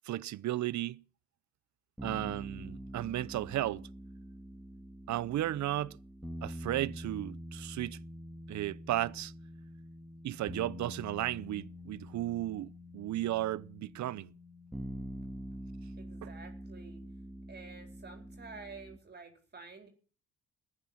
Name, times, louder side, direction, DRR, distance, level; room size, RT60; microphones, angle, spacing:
voice 1, 0.1-1.0 2.0-3.9 5.1-6.0 6.4-8.0 8.5-9.3 10.2-14.3 16.2-16.3, right 14 dB, 70° right, 0.7 m, -34 dB
sound 1, 2.0-19.0, equal, ahead, 2.4 m, -46 dB
voice 2, 16.0-17.0 17.5-19.9, right 4 dB, 35° right, 4.4 m, -50 dB
15.0 x 9.7 x 7.3 m
cardioid pair, 90°, 30 cm